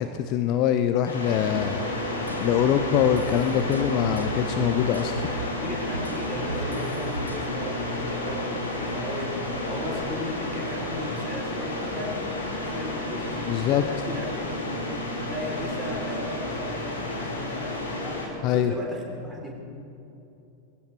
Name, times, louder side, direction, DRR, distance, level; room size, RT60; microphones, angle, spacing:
voice 1, 0.0-1.8 2.3-5.3 13.5-13.8 18.4-18.7, left 10 dB, 40° left, 8 dB, 0.7 m, -24 dB
sound 1, 1.0-18.3, left 1 dB, 75° left, 2.7 m, -31 dB
sound 2, 2.3-5.6 5.9-7.4, right 2 dB, 85° right, 0.8 m, -35 dB
voice 2, 5.6-12.2 12.6-14.7 15.2-19.5, left 1 dB, 5° right, -2 dB, 3.4 m, -35 dB
19.5 x 16.0 x 4.5 m, 2.8 s
figure-of-eight pair, 90°, 0 cm